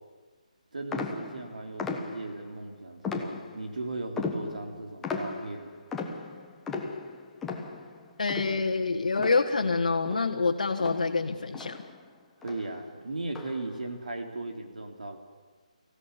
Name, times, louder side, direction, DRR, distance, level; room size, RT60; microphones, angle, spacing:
voice 1, 0.7-5.7 12.4-15.2, right 2 dB, 85° right, 4 dB, 3.7 m, -37 dB
sound 1, 0.9-2.5 3.0-3.8 4.2-9.8 10.0-12.1 12.4-12.8 13.3-13.8, left 4 dB, 5° left, 1.3 m, -37 dB
voice 2, 8.2-11.8, left 4 dB, 75° left, 1 dB, 1.6 m, -26 dB
25.0 x 16.0 x 8.4 m, 1.3 s
hypercardioid pair, 165°, 4 cm